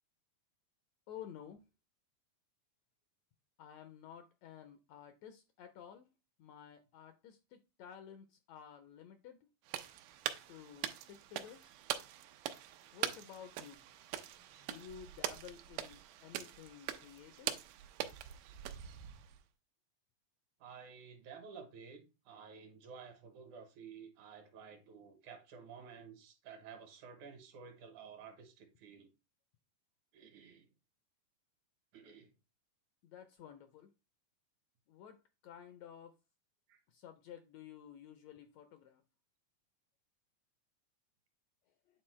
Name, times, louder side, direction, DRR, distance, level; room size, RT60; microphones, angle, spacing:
voice 1, 1.1-1.6 3.6-6.1 6.4-9.5 10.5-11.7 12.9-13.8 14.6-17.6 33.0-33.9 34.9-36.2 36.9-39.0, left 9 dB, 80° left, 1.6 m, -53 dB
sound 1, 9.7-19.4, right 12 dB, 90° right, 2.2 m, -43 dB
voice 2, 20.6-29.1 30.1-30.7 31.9-32.3 36.7-36.8, right 6 dB, 75° right, 2.5 m, -53 dB
8.9 x 3.9 x 3.1 m
omnidirectional pair, 3.6 m